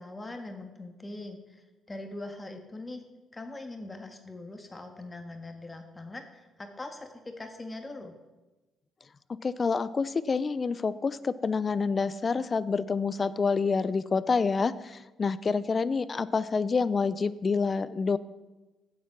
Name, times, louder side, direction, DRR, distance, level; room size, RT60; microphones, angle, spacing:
voice 1, 0.0-3.0 3.3-8.1, left 2 dB, 20° left, 5 dB, 1.6 m, -42 dB
voice 2, 9.4-18.2, left 4 dB, 35° left, 17 dB, 0.6 m, -27 dB
16.0 x 7.5 x 6.0 m, 1.1 s
cardioid pair, 90°, 0 cm